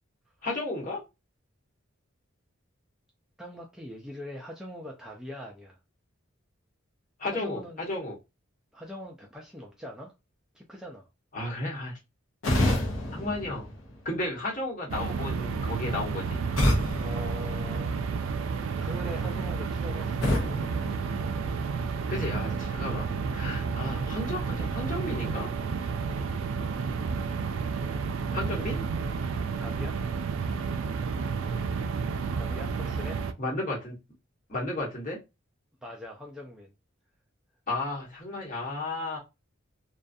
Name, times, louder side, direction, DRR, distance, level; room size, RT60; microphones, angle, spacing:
voice 1, 0.4-1.0 7.2-8.2 11.3-12.0 13.1-13.7 14.0-16.4 22.1-25.5 28.3-28.9 33.4-33.9 34.5-35.2 37.7-39.2, left 2 dB, 40° left, 1.1 m, -33 dB
voice 2, 3.4-5.8 7.3-7.8 8.7-10.1 10.5-11.1 17.0-18.0 18.8-20.3 29.6-30.0 32.3-33.2 35.8-36.7, left 1 dB, 5° right, 0.3 m, -42 dB
sound 1, 12.4-14.4 16.6-18.3 20.2-21.8, left 1 dB, 80° left, 0.7 m, -29 dB
sound 2, 14.9-33.3, right 5 dB, 75° right, 0.3 m, -31 dB
2.4 x 2.3 x 2.5 m
head